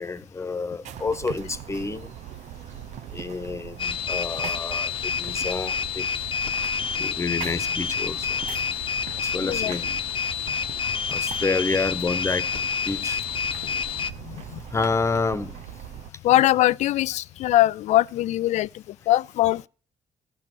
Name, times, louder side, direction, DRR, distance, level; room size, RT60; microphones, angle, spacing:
voice 1, 0.0-2.1 3.1-6.1 7.0-8.4 9.2-10.0 11.1-12.5 12.9-13.2 14.7-15.6, left 3 dB, 25° left, 1.1 m, -29 dB
sound 1, 0.8-16.1, right 11 dB, 80° right, 0.6 m, -40 dB
sound 2, 3.8-14.1, left 7 dB, 50° left, 0.9 m, -28 dB
voice 2, 9.4-9.7 13.6-13.7 14.2-14.6 16.2-19.7, left 15 dB, 80° left, 0.4 m, -22 dB
14.0 x 5.9 x 6.1 m
cardioid pair, 75°, 12 cm